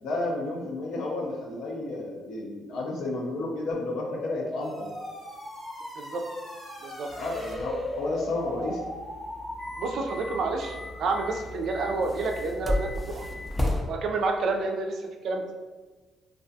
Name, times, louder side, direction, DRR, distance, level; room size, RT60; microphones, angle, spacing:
voice 1, 0.0-4.9 7.2-8.9, left 2 dB, 75° left, -1 dB, 0.5 m, -32 dB
sound 1, 3.7-11.2, left 1 dB, 20° left, 0.7 m, -37 dB
sound 2, 7.1-13.8, left 1 dB, 5° left, 0.3 m, -35 dB
voice 2, 9.8-13.3 13.9-15.6, right 3 dB, 70° right, 3 dB, 0.3 m, -29 dB
2.3 x 2.3 x 2.6 m, 1.3 s
cardioid pair, 90°, 0 cm